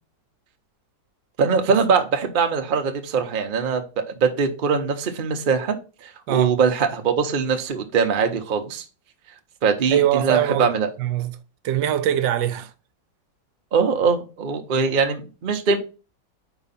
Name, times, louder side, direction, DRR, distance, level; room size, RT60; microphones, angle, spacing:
voice 1, 1.4-8.8 9.6-10.9 13.7-15.8, right 5 dB, 40° right, 0.7 m, -22 dB
voice 2, 9.9-10.7 11.0-11.4 11.6-12.7, right 11 dB, 85° right, 1.4 m, -22 dB
4.9 x 4.7 x 5.6 m
omnidirectional pair, 1.9 m